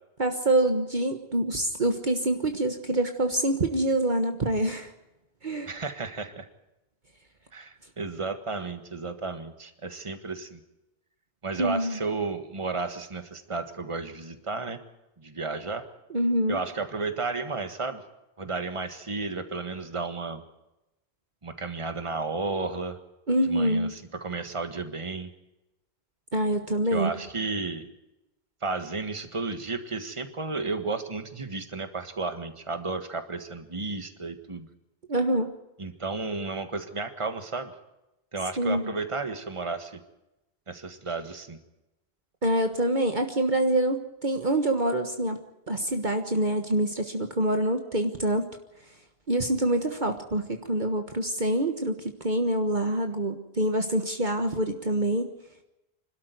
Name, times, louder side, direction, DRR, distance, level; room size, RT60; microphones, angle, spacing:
voice 1, 0.2-4.9 5.4-5.7 11.6-12.0 16.1-16.6 23.3-23.9 26.3-27.1 35.1-35.5 38.6-38.9 42.4-45.4 45.7-48.4 49.3-52.0 52.2-55.3, right 1 dB, 50° right, 5 dB, 1.6 m, -26 dB
voice 2, 5.7-6.5 7.5-10.6 11.4-14.8 15.2-15.9 16.5-18.0 18.4-20.4 21.4-23.0 23.4-25.3 26.9-27.9 28.6-34.7 35.8-37.7 38.3-40.0 40.7-41.6, right 3 dB, 30° right, 8 dB, 1.7 m, -33 dB
26.0 x 13.0 x 9.4 m, 0.93 s
omnidirectional pair, 1.0 m